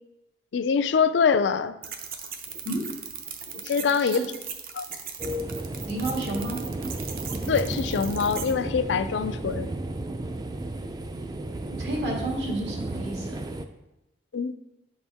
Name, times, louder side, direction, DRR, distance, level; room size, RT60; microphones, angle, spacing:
voice 1, 0.5-1.7 3.6-4.2 4.7-4.8 7.5-9.7 14.3-14.5, left 6 dB, 80° left, 13 dB, 0.4 m, -24 dB
sound 1, 1.8-8.5, right 7 dB, 50° right, 0.7 m, -39 dB
sound 2, 5.2-13.6, right 1 dB, 20° right, 0.3 m, -33 dB
voice 2, 5.9-6.6 11.8-13.4, right 2 dB, 75° right, -2 dB, 1.9 m, -31 dB
8.4 x 4.2 x 3.5 m, 0.94 s
head